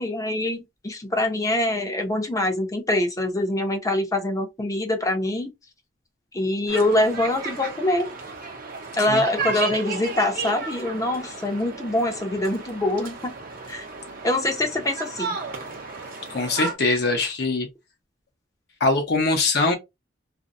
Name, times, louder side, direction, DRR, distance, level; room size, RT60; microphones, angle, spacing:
voice 1, 0.0-5.5 6.3-8.1 9.0-13.3 13.7-13.9 14.2-15.4, left 1 dB, 20° left, 0.6 m, -24 dB
sound 1, 6.7-16.7, right 4 dB, 50° right, 0.7 m, -34 dB
voice 2, 16.3-17.7 18.8-19.7, left 3 dB, 60° left, 0.7 m, -22 dB
2.6 x 2.1 x 2.5 m
head